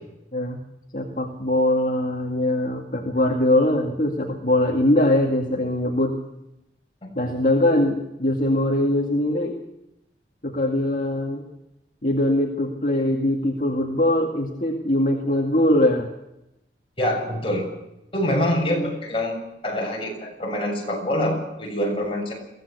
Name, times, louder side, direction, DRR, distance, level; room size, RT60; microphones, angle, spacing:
voice 1, 0.9-6.2 7.2-9.6 10.4-11.5 12.0-16.1, left 1 dB, 45° left, 1 dB, 2.2 m, -22 dB
voice 2, 17.0-17.7 18.1-22.3, left 1 dB, 30° left, 0 dB, 7.2 m, -25 dB
23.0 x 16.5 x 6.9 m, 0.88 s
head